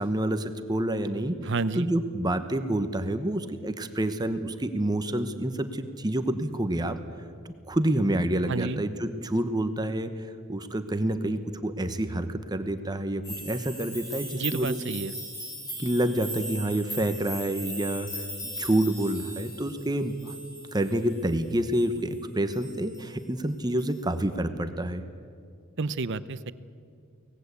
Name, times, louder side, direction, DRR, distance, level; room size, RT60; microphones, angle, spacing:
voice 1, 0.0-7.0 7.7-10.1 10.5-14.8 15.8-20.4 20.7-25.0, right 1 dB, 20° right, 9 dB, 1.0 m, -28 dB
voice 2, 1.4-1.9 8.5-8.8 14.3-15.1 25.8-26.5, right 3 dB, 60° right, 15 dB, 0.8 m, -30 dB
sound 1, 13.2-22.2 22.5-23.1 23.8-23.9, equal, 15° left, 5.9 m, -39 dB
24.0 x 18.5 x 8.2 m, 2.3 s
head